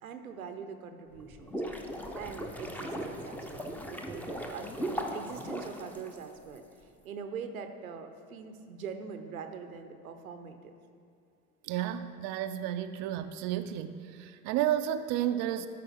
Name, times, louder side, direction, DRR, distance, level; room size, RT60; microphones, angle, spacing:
voice 1, 0.0-1.6 2.1-6.6 7.0-10.7, right 6 dB, 85° right, 7 dB, 0.7 m, -43 dB
sound 1, 1.2-6.6, equal, 5° left, 0.6 m, -38 dB
voice 2, 11.6-15.7, right 11 dB, 40° right, 9 dB, 0.4 m, -32 dB
12.5 x 4.8 x 3.5 m, 2.5 s
figure-of-eight pair, 70°, 41 cm